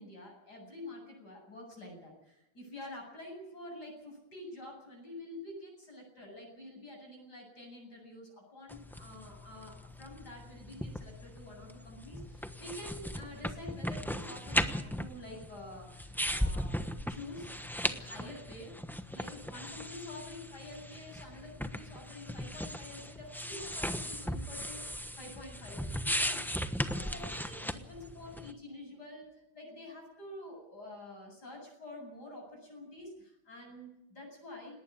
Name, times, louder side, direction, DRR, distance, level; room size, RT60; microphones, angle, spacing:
voice 1, 0.0-17.5 17.8-18.8 19.1-34.8, left 1 dB, 50° left, 0 dB, 8.7 m, -48 dB
sound 1, 8.7-28.5, equal, ahead, 0.6 m, -37 dB
19.0 x 19.0 x 8.5 m, 0.92 s
omnidirectional pair, 2.2 m